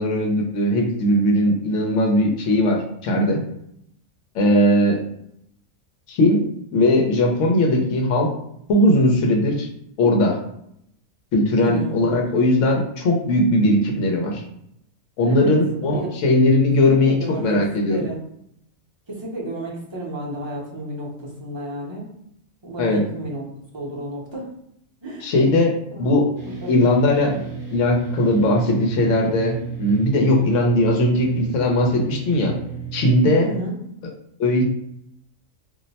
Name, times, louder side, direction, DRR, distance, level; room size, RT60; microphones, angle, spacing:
voice 1, 0.0-3.4 4.3-5.0 6.1-6.4 6.7-8.3 8.7-9.7 10.0-10.4 11.3-14.4 15.2-18.0 22.8-23.0 25.2-25.7 26.0-26.3 26.7-27.3 27.7-32.5 32.9-33.5 34.0-34.1 34.4-34.6, left 1 dB, 70° left, 0 dB, 1.0 m, -19 dB
voice 2, 11.6-12.0 15.2-15.5 15.9-16.1 16.8-17.6 17.9-18.2 19.1-22.1 22.6-23.5 23.7-24.5 25.0-25.3 25.9-26.1 26.6-26.8 27.3-27.4 33.4-33.7, right 1 dB, 30° right, -5 dB, 0.6 m, -32 dB
sound 1, 26.4-33.1, right 7 dB, 45° right, 1.0 m, -34 dB
2.6 x 2.1 x 4.0 m, 0.74 s
omnidirectional pair, 1.3 m